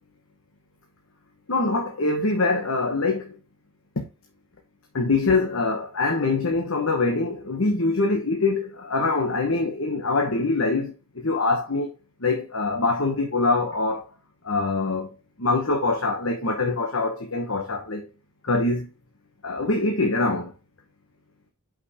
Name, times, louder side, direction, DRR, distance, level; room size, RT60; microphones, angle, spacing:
voice 1, 1.5-3.4 4.9-11.9 12.2-14.1 14.4-18.1 18.4-18.9 19.4-20.5, left 3 dB, 70° left, 1.2 m, -24 dB
5.8 x 5.2 x 4.9 m
head